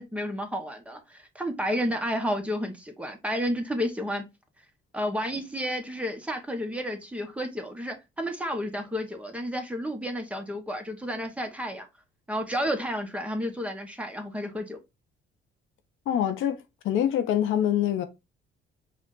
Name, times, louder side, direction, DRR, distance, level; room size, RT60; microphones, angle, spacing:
voice 1, 0.0-4.2 4.9-11.9 12.3-14.8, equal, 5° right, 1.1 m, -31 dB
voice 2, 16.1-16.6 16.8-18.0, left 10 dB, 85° left, 0.8 m, -24 dB
5.0 x 2.5 x 3.8 m
cardioid pair, 90°, 20 cm